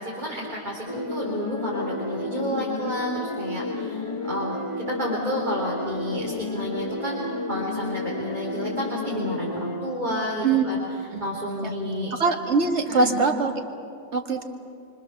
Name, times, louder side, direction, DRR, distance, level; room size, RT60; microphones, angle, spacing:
voice 1, 0.0-10.8 11.2-12.1 12.9-13.1, equal, 40° right, -4 dB, 4.0 m, -31 dB
sound 1, 0.9-10.1, left 2 dB, 30° left, 0.9 m, -31 dB
voice 2, 12.1-13.5 14.1-14.4, right 4 dB, 70° right, 3 dB, 2.1 m, -22 dB
26.0 x 25.0 x 7.1 m, 2.5 s
omnidirectional pair, 1.2 m